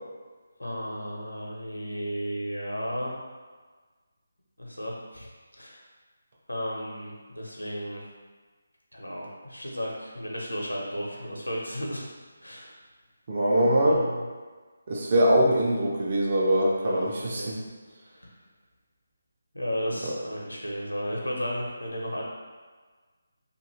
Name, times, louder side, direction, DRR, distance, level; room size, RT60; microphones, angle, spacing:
voice 1, 0.6-3.1 4.6-5.3 5.6-5.8 6.5-8.0 8.9-12.1 12.4-12.7 13.8-14.3 16.8-17.5 18.1-18.3 19.5-22.2, equal, 85° left, -2 dB, 0.7 m, -34 dB
voice 2, 13.3-14.0 14.9-17.5, right 1 dB, 40° right, -3 dB, 0.5 m, -22 dB
2.6 x 2.6 x 3.0 m, 1.4 s
figure-of-eight pair, 150°, 0 cm